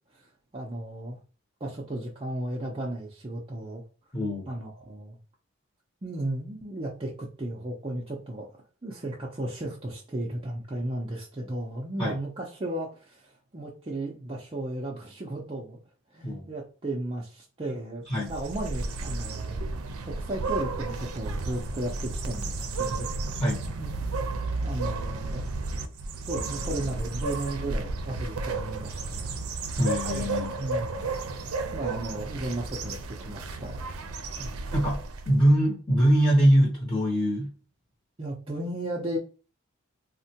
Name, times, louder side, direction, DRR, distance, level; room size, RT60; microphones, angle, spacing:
voice 1, 0.1-1.2 1.6-3.8 4.5-5.2 6.0-15.8 16.1-19.6 20.1-23.1 23.8-23.9 24.6-25.5 26.3-29.4 30.1-30.3 30.6-31.1 31.7-34.0 34.4-34.5 38.2-39.2, right 1 dB, 25° right, -3 dB, 0.4 m, -35 dB
voice 2, 4.1-4.5 12.0-12.1 16.2-16.5 18.1-18.3 23.4-23.6 29.8-30.6 34.7-37.5, equal, 20° left, -5 dB, 0.7 m, -23 dB
sound 1, 18.1-35.4, right 3 dB, 90° right, 0.5 m, -33 dB
3.5 x 2.1 x 2.7 m, 0.37 s
head